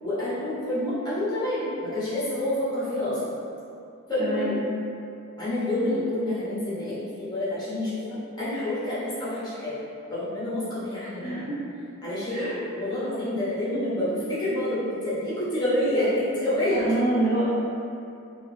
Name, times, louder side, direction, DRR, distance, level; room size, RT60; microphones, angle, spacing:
voice 1, 0.0-3.2 4.1-4.6 5.4-9.7 10.1-11.5 12.0-16.8, left 1 dB, 20° left, -12 dB, 1.0 m, -28 dB
voice 2, 4.2-4.6 11.2-11.5 12.3-12.5 16.8-17.4, right 2 dB, 30° right, -11 dB, 0.7 m, -26 dB
3.8 x 2.5 x 2.7 m, 2.6 s
head